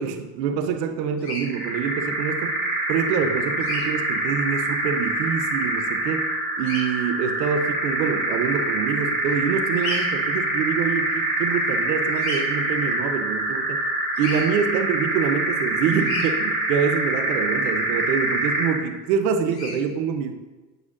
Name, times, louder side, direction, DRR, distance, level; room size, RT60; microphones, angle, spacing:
voice 1, 0.0-2.6 2.9-6.3 6.6-13.8 14.2-20.3, right 7 dB, 85° right, 8 dB, 0.8 m, -26 dB
Bird vocalization bird call bird song, 1.2-1.4 3.6-3.9 6.6-6.8 9.8-10.1 12.1-12.4 14.1-14.4 16.0-16.3 19.5-19.8, left 2 dB, 50° left, 2.5 m, -31 dB
sound 1, 1.4-18.8, right 2 dB, 25° right, 2.6 m, -25 dB
9.3 x 8.1 x 2.5 m, 1.2 s
hypercardioid pair, 60°, 47 cm